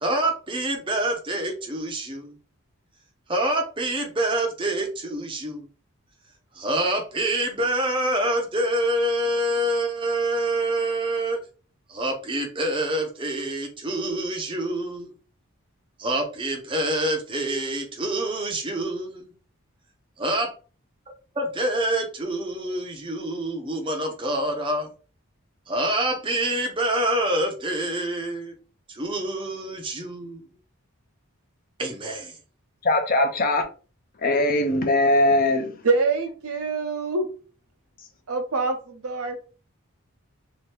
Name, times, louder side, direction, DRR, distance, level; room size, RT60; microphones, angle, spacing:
voice 1, 0.0-2.3 3.3-5.7 6.5-11.4 11.9-15.1 16.0-19.3 20.2-20.5 21.3-24.9 25.7-28.5 28.9-30.4 31.8-32.4, right 1 dB, 25° right, 0.6 m, -26 dB
voice 2, 32.8-33.6 34.2-35.8, left 2 dB, 40° left, 0.5 m, -20 dB
voice 3, 35.8-37.3 38.3-39.4, right 3 dB, 85° right, 0.8 m, -25 dB
2.9 x 2.6 x 3.3 m
head